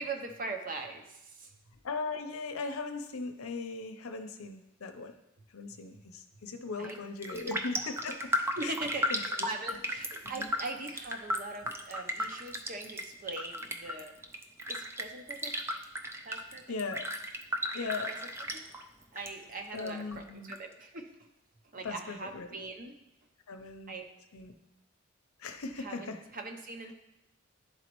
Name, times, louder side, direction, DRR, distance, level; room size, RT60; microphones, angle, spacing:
voice 1, 0.0-1.5 5.9-6.0 6.8-7.0 7.3-7.6 8.6-9.1 9.4-14.1 14.7-15.6 16.2-16.8 18.1-18.2 18.5-18.6 19.1-21.3 21.7-23.0 23.9-24.1 25.8-26.9, right 3 dB, 40° right, 4 dB, 0.7 m, -41 dB
voice 2, 1.7-5.1 5.5-8.3 8.6-8.7 9.1-9.2 10.3-10.5 16.7-17.1 17.7-18.1 19.7-20.5 21.8-22.5 23.5-23.9 24.3-24.5 25.4-26.2, left 4 dB, 85° left, 7 dB, 0.6 m, -38 dB
Raindrop, 6.7-7.0 7.2-19.3 19.6-20.6 21.0-21.1, equal, 10° right, 0.3 m, -35 dB
11.0 x 4.1 x 3.0 m, 0.87 s
head